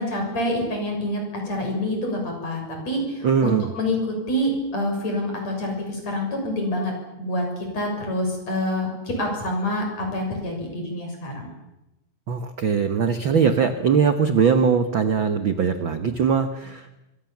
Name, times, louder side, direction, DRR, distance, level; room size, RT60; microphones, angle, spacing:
voice 1, 0.0-6.9 7.2-11.5, left 1 dB, 45° left, 2 dB, 8.0 m, -27 dB
voice 2, 3.2-3.7 12.3-16.9, right 6 dB, 65° right, 8 dB, 1.2 m, -21 dB
25.5 x 25.5 x 7.3 m, 0.94 s
omnidirectional pair, 4.1 m